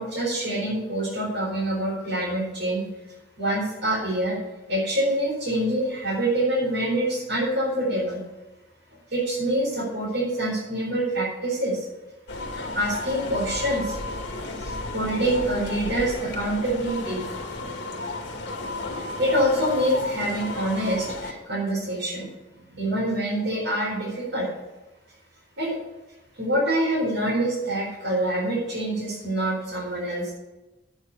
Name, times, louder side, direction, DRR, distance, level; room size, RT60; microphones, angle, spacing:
voice 1, 0.0-2.8 3.4-4.4 4.7-8.2 9.1-11.9 12.5-14.0 14.6-17.2 19.0-22.3 22.7-24.5 25.6-25.8 26.4-30.3, right 1 dB, 70° right, -7 dB, 4.5 m, -26 dB
sound 1, 12.3-21.3, left 2 dB, 60° left, 1.8 m, -33 dB
9.3 x 6.4 x 8.5 m, 1.1 s
head